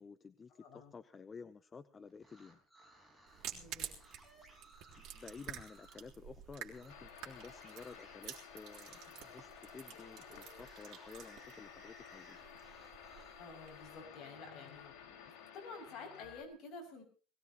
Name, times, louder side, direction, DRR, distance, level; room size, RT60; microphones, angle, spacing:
voice 1, 0.0-2.6 5.0-12.4, left 5 dB, 20° left, 12 dB, 0.7 m, -53 dB
voice 2, 0.6-0.9 3.5-3.9 13.4-17.0, left 4 dB, 45° left, 2 dB, 6.6 m, -51 dB
sound 1, 2.1-6.1 6.7-6.9 7.3-13.4 13.7-15.4, right 1 dB, ahead, 4.5 m, -62 dB
sound 2, 3.3-14.0, right 11 dB, 55° right, 3.5 m, -51 dB
sound 3, 6.9-16.4, left 8 dB, 75° left, 4.4 m, -54 dB
20.5 x 18.0 x 3.0 m, 0.39 s
cardioid pair, 155°, 0 cm